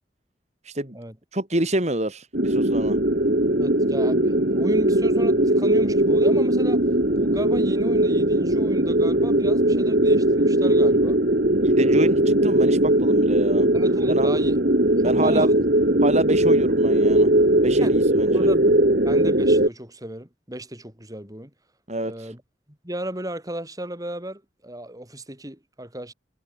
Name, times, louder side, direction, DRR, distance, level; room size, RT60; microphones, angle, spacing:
voice 1, 0.6-1.0 1.3-3.0 11.6-13.7 14.1-14.3 15.0-15.5 16.0-17.3 17.6-18.5 21.9-22.3, right 1 dB, 40° right, 4.0 m, -27 dB
sound 1, 2.3-19.7, right 1 dB, 55° right, 2.9 m, -19 dB
voice 2, 3.6-6.8 7.1-11.2 11.8-12.1 13.7-14.6 15.0-15.5 17.8-18.0 18.3-21.5 22.0-22.4 22.8-26.1, right 1 dB, 20° right, 6.3 m, -34 dB
head